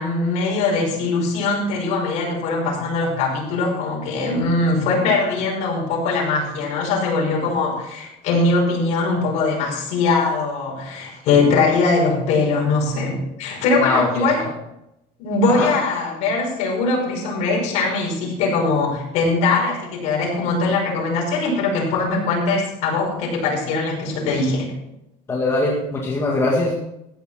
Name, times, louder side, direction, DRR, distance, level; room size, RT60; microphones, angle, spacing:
voice 1, 0.0-14.5 15.2-24.7, left 3 dB, 50° left, -2 dB, 5.5 m, -21 dB
voice 2, 13.8-14.3 15.5-15.7 25.3-26.8, left 2 dB, 15° left, -4 dB, 1.9 m, -21 dB
15.0 x 10.0 x 4.4 m, 0.84 s
cardioid pair, 175°, 15 cm